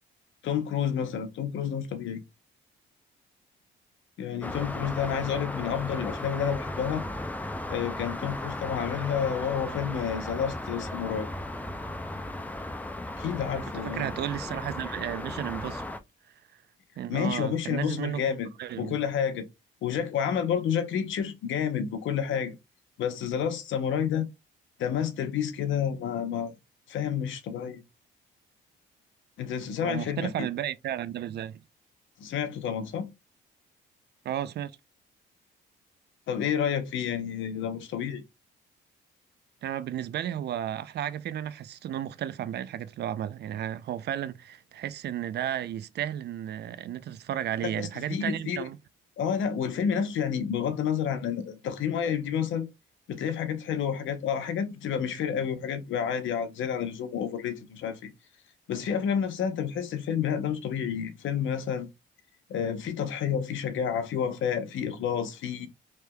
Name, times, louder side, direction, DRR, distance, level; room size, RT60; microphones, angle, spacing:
voice 1, 0.4-2.2 4.2-7.0 7.7-11.3 13.2-14.1 17.1-18.5 18.8-19.5 19.8-22.6 23.0-24.3 24.8-26.6 26.9-27.8 29.4-30.3 32.2-33.1 36.3-38.2 47.6-48.7 49.2-52.7 53.1-58.1 58.7-61.9 62.5-65.7, left 8 dB, 75° left, 0.8 m, -30 dB
sound 1, 4.4-16.0, left 1 dB, 10° left, 0.4 m, -36 dB
voice 2, 13.7-15.8 17.0-18.3 18.6-18.9 29.8-31.6 34.2-34.7 39.6-48.8, right 10 dB, 55° right, 0.4 m, -33 dB
3.3 x 2.9 x 2.2 m
cardioid pair, 90°, 20 cm